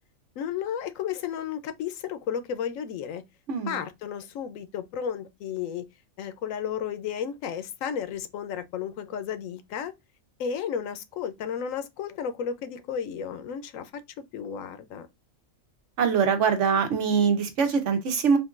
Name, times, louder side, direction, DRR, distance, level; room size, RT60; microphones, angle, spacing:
voice 1, 0.4-3.2 3.7-5.9 6.2-9.9 10.4-13.9 14.3-15.1, left 8 dB, 85° left, 1.0 m, -33 dB
voice 2, 3.5-3.8 16.0-18.4, right 6 dB, 70° right, 1.1 m, -23 dB
3.6 x 2.6 x 2.4 m
omnidirectional pair, 1.3 m